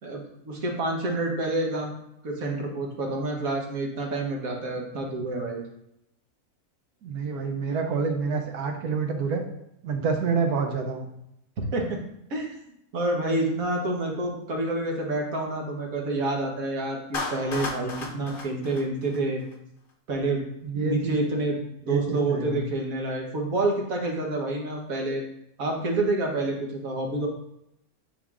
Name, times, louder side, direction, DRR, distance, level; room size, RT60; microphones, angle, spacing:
voice 1, 0.0-1.9 2.2-5.6 11.7-12.0 12.3-12.5 12.9-19.4 20.1-20.4 20.8-25.2 25.6-27.3, right 2 dB, 65° right, 0 dB, 1.6 m, -28 dB
voice 2, 7.0-9.4 9.8-11.1 20.6-21.2 21.8-22.6, right 5 dB, 85° right, 4 dB, 1.3 m, -27 dB
Clapping, 17.1-19.5, left 3 dB, 45° left, 0.8 m, -34 dB
10.0 x 3.9 x 2.4 m, 0.79 s
omnidirectional pair, 1.6 m